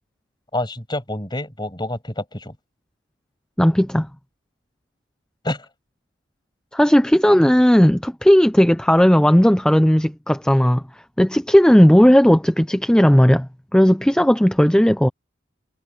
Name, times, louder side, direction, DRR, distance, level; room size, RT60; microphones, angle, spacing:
voice 1, 0.5-2.6 5.4-5.7, left 1 dB, 20° left, 7.3 m, -27 dB
voice 2, 3.6-4.1 6.7-10.8 11.2-15.1, equal, 5° left, 0.5 m, -15 dB
head